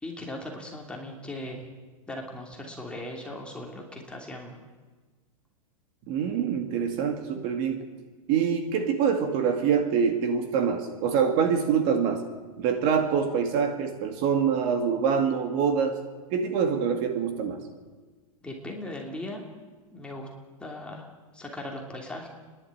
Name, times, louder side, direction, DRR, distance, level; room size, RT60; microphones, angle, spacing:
voice 1, 0.0-1.7 2.1-4.6 18.4-19.4 19.9-20.3 20.6-21.1 21.3-22.3, left 1 dB, 5° left, 0 dB, 2.9 m, -38 dB
voice 2, 6.1-7.9 8.3-12.2 12.6-16.0 16.3-17.6, right 7 dB, 45° right, 5 dB, 2.3 m, -25 dB
29.5 x 11.0 x 9.0 m, 1.3 s
supercardioid pair, 150°, 18 cm